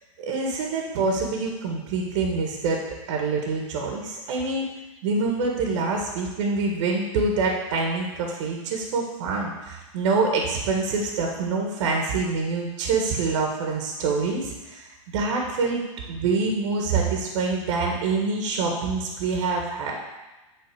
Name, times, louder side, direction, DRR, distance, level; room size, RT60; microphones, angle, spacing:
voice 1, 0.2-2.8 3.1-4.7 5.0-14.8 15.1-15.8 16.1-20.0, right 4 dB, 60° right, 0 dB, 1.7 m, -26 dB
8.5 x 4.1 x 7.0 m, 1.1 s
hypercardioid pair, 120°, 17 cm